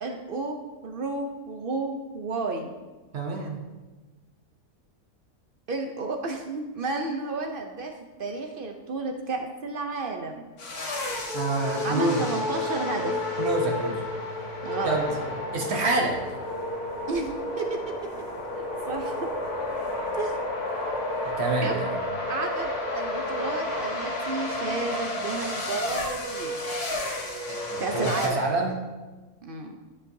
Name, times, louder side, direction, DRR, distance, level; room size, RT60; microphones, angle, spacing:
voice 1, 0.0-2.7 5.7-7.9 8.2-10.5 11.8-13.2 14.6-15.0 17.1-18.0 18.6-19.3 20.2-20.4 21.6-21.9 22.3-26.6 27.8-28.4 29.4-29.8, right 3 dB, 75° right, 4 dB, 0.5 m, -32 dB
voice 2, 3.1-3.6 11.3-12.3 13.4-14.1 14.8-15.1 15.5-16.3 21.2-22.0 27.5-28.8, right 2 dB, 50° right, 1 dB, 1.0 m, -27 dB
sound 1, 10.6-28.3, left 1 dB, 70° left, 1.8 m, -31 dB
12.5 x 5.4 x 2.7 m, 1.2 s
omnidirectional pair, 1.7 m